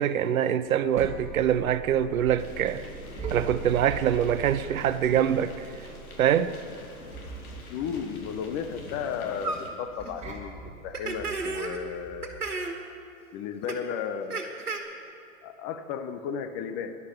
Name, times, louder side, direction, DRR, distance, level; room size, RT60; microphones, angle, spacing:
voice 1, 0.0-2.9 3.3-5.9 6.2-6.5, right 9 dB, 65° right, 0.7 m, -24 dB
sound 1, 0.6-12.5, right 5 dB, 15° right, 2.2 m, -42 dB
sound 2, 2.4-9.7, left 2 dB, 70° left, 2.6 m, -45 dB
voice 2, 7.7-10.5 10.8-12.6 13.3-14.5 15.4-17.0, left 7 dB, 30° left, 0.9 m, -34 dB
sound 3, 9.4-9.6 10.0-10.1 10.9-11.8 12.2-12.8 13.7-13.8 14.3-14.8, right 3 dB, 90° right, 1.7 m, -32 dB
11.5 x 11.0 x 7.1 m
figure-of-eight pair, 105°, 44 cm